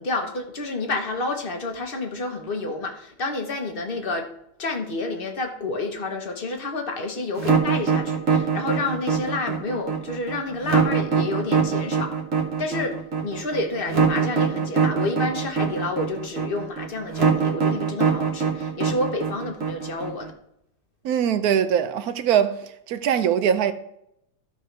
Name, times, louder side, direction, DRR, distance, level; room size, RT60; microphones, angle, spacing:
voice 1, 0.0-4.3 4.6-12.2 12.6-20.3, left 2 dB, 35° left, 1.0 m, -29 dB
sound 1, 7.4-20.3, right 6 dB, 45° right, 1.4 m, -22 dB
voice 2, 21.0-23.7, right 8 dB, 70° right, 0.9 m, -22 dB
14.5 x 5.2 x 3.3 m
omnidirectional pair, 2.1 m